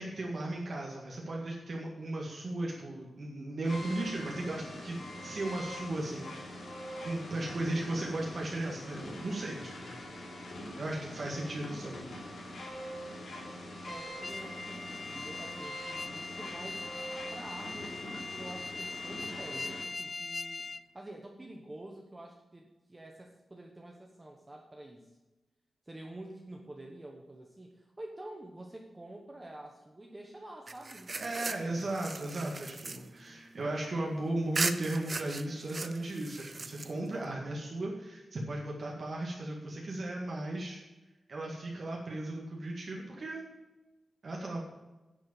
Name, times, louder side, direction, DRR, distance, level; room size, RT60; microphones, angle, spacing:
voice 1, 0.0-6.7 7.0-10.0 10.8-12.0 31.2-40.8 41.3-43.4 44.2-44.6, right 2 dB, 50° right, -2 dB, 1.9 m, -36 dB
sound 1, 3.6-19.8, left 1 dB, 65° left, 3.5 m, -43 dB
voice 2, 10.8-11.3 13.9-16.9 17.3-25.1 25.9-31.9, right 1 dB, 15° right, 1 dB, 1.1 m, -48 dB
sound 2, 14.2-20.8, left 3 dB, 30° left, 0.4 m, -41 dB
sound 3, 30.7-34.1 34.5-37.2, right 3 dB, 30° right, 0.5 m, -38 dB
10.5 x 6.5 x 7.1 m, 1.1 s
wide cardioid pair, 160°, 0 cm